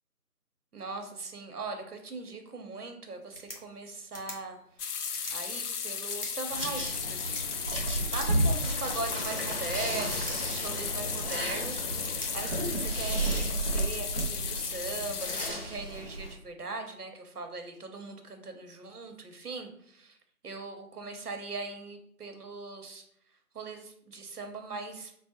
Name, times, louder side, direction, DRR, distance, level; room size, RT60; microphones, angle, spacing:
voice 1, 0.7-4.6 5.3-7.6 7.9-20.2 20.4-23.0 23.5-25.1, right 3 dB, 75° right, 5 dB, 0.8 m, -40 dB
sound 1, 3.1-15.1, equal, 40° left, 0.7 m, -49 dB
sound 2, 4.8-15.5, left 6 dB, 80° left, 0.5 m, -35 dB
sound 3, 6.5-16.3, right 1 dB, 40° right, 0.9 m, -33 dB
4.6 x 2.0 x 2.9 m, 0.69 s
figure-of-eight pair, 175°, 46 cm